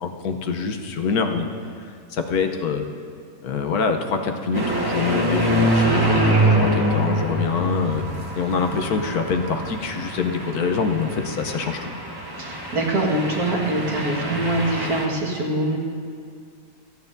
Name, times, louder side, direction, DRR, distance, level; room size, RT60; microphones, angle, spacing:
voice 1, 0.0-1.5 2.1-2.9 3.4-8.0 8.3-11.9, left 5 dB, 75° left, 5 dB, 1.4 m, -25 dB
sound 1, 4.5-15.0, right 1 dB, 15° right, 1.2 m, -24 dB
voice 2, 12.4-15.8, right 1 dB, 75° right, -2 dB, 2.3 m, -24 dB
28.0 x 9.4 x 2.7 m, 2.2 s
omnidirectional pair, 1.6 m